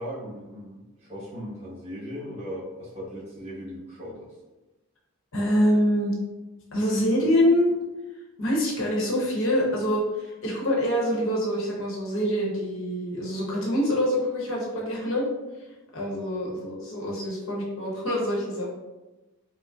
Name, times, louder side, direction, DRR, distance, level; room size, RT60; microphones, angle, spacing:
voice 1, 0.0-4.3, equal, 30° right, -9 dB, 1.2 m, -38 dB
voice 2, 5.3-6.1 6.7-7.7 8.4-15.3 15.9-18.7, equal, 65° left, -3 dB, 0.9 m, -25 dB
4.9 x 2.0 x 2.4 m, 1.1 s
head